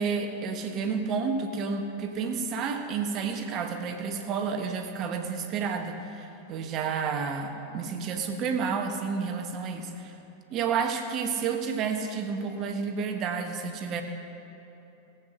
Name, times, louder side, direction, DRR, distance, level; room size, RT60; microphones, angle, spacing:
voice 1, 0.0-10.1 10.5-14.0, right 5 dB, 35° right, 5 dB, 1.4 m, -30 dB
17.5 x 8.4 x 6.4 m, 3.0 s
figure-of-eight pair, 90°, 0 cm